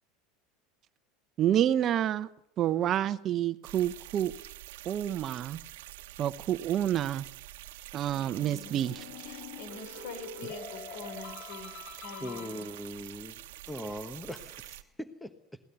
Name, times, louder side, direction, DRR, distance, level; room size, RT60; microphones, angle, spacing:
voice 1, 1.4-2.3 2.6-4.3 4.8-5.6 6.2-7.2 7.9-9.0, right 11 dB, 45° right, 0.9 m, -28 dB
sound 1, 3.6-14.8, right 16 dB, 80° right, 1.2 m, -47 dB
sound 2, 8.1-13.0, left 5 dB, 50° left, 3.5 m, -46 dB
voice 2, 9.2-12.7, left 4 dB, 70° left, 5.3 m, -45 dB
voice 3, 12.2-15.6, equal, 5° left, 1.3 m, -41 dB
21.5 x 18.0 x 7.0 m
supercardioid pair, 105°, 0 cm